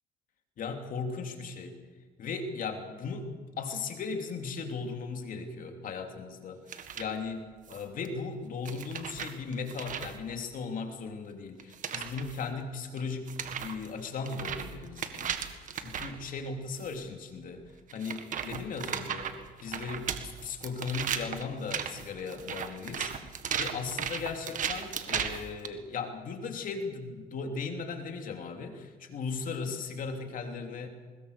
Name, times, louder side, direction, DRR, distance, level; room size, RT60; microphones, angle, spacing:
voice 1, 0.6-1.8 2.2-3.3 3.6-6.6 7.0-15.4 15.7-17.6 17.9-23.1 23.6-30.9, left 4 dB, 55° left, 4 dB, 3.0 m, -37 dB
sound 1, 6.7-7.1 7.7-8.1 8.6-10.2 11.6-12.4 13.0-13.1 13.3-16.2 16.8-17.0 17.9-25.7, right 8 dB, 50° right, 1.7 m, -36 dB
20.5 x 20.5 x 6.8 m, 1.4 s
cardioid pair, 110°, 17 cm